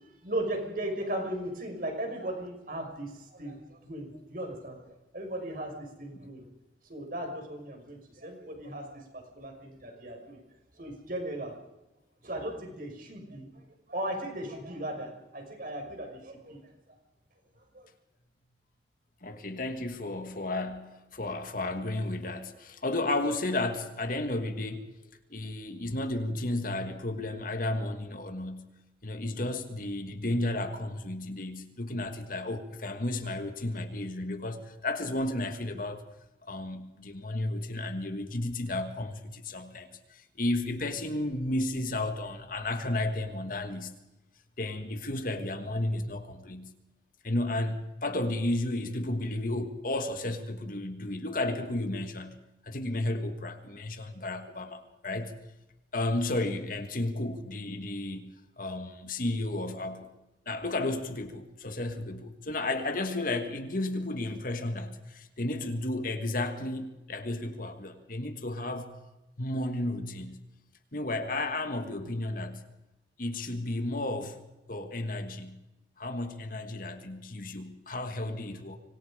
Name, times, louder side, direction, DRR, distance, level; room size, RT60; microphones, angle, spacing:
voice 1, 0.2-4.8 5.1-6.4 6.9-10.4 10.8-11.5 12.2-13.5 13.9-16.6 17.6-17.9, right 1 dB, 50° right, 3 dB, 6.2 m, -37 dB
voice 2, 19.2-24.9 25.3-28.7 29.0-36.0 36.4-44.0 44.6-46.7 47.2-55.3 55.9-60.1 60.5-69.0 69.4-70.4 70.9-72.6 73.2-74.4 74.7-75.6 76.0-78.8, left 2 dB, 50° left, 7 dB, 2.1 m, -33 dB
25.5 x 25.0 x 5.3 m, 0.97 s
head